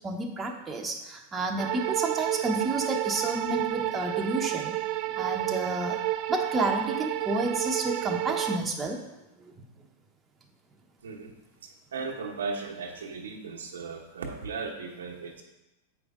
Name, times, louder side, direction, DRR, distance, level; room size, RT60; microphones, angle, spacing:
voice 1, 0.0-4.7 5.1-6.0 6.3-9.0 9.4-9.5, right 2 dB, 20° right, 2 dB, 1.0 m, -30 dB
sound 1, 1.6-8.6, right 15 dB, 50° right, 0.4 m, -30 dB
voice 2, 11.0-15.4, right 4 dB, 80° right, 0 dB, 1.2 m, -37 dB
7.8 x 5.2 x 3.7 m, 1.0 s
hypercardioid pair, 100°, 0 cm